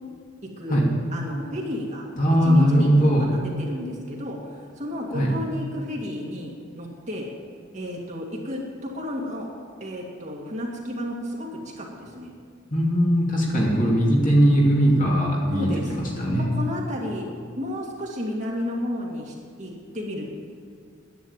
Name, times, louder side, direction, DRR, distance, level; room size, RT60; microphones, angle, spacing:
voice 1, 1.1-2.0 2.4-7.3 7.7-9.5 9.8-12.3 15.5-15.9 16.4-17.3 17.6-20.4, left 1 dB, 35° right, -2 dB, 2.1 m, -32 dB
voice 2, 2.2-3.3 5.1-5.3 12.7-16.5, equal, 40° left, -3 dB, 2.7 m, -20 dB
11.0 x 9.1 x 9.0 m, 2.2 s
head